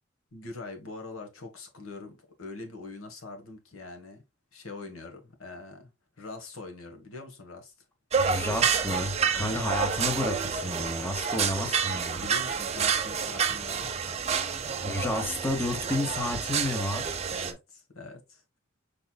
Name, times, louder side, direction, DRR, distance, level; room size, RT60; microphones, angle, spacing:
voice 1, 0.3-4.2 4.5-5.9 6.2-7.7 9.3-9.6 12.1-14.7 17.3-18.6, left 3 dB, 85° left, 1.3 m, -43 dB
sound 1, 8.1-17.5, right 6 dB, 30° right, 0.7 m, -29 dB
voice 2, 8.2-12.2 14.8-17.2, left 1 dB, 10° left, 0.9 m, -31 dB
5.3 x 4.5 x 2.2 m
head